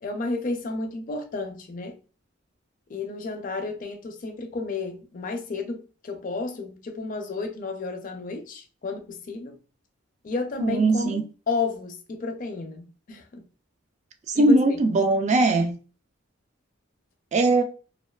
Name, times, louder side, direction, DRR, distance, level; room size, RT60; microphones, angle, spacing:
voice 1, 0.0-2.0 2.9-9.6 10.2-13.4 14.3-14.8, left 3 dB, 40° left, 0.4 m, -32 dB
voice 2, 10.6-11.2 14.3-15.8 17.3-17.6, right 2 dB, 35° right, 0.3 m, -20 dB
2.4 x 2.3 x 2.2 m
head